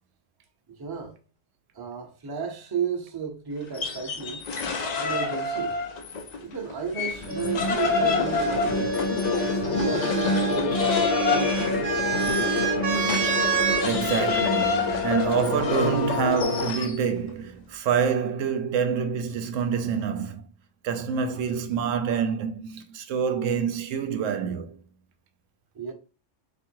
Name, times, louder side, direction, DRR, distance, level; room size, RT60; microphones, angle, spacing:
voice 1, 0.7-1.2 1.7-4.4 4.9-5.8 6.4-8.9 9.4-12.5 25.7-25.9, right 6 dB, 25° right, 0.6 m, -34 dB
sound 1, 3.6-6.4 6.7-17.0, left 4 dB, 50° left, 0.5 m, -29 dB
sound 2, 7.1-16.7, left 3 dB, 65° left, 1.0 m, -27 dB
sound 3, 7.3-13.9 15.0-15.6, right 5 dB, 60° right, 1.0 m, -30 dB
voice 2, 13.8-20.4 20.8-24.8, right 7 dB, 80° right, 0.9 m, -27 dB
3.6 x 2.6 x 4.5 m
omnidirectional pair, 1.3 m